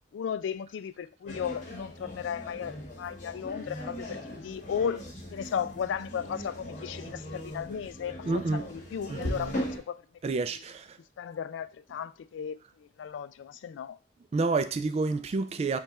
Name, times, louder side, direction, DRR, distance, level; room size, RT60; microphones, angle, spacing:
voice 1, 0.1-10.0 10.5-10.6 11.2-14.0, left 7 dB, 85° left, 0.3 m, -35 dB
sound 1, 1.3-9.8, equal, 45° left, 1.2 m, -39 dB
voice 2, 8.2-8.6 9.1-9.6 10.2-11.0 14.3-15.8, right 3 dB, 35° right, 0.3 m, -29 dB
5.4 x 2.4 x 4.1 m
head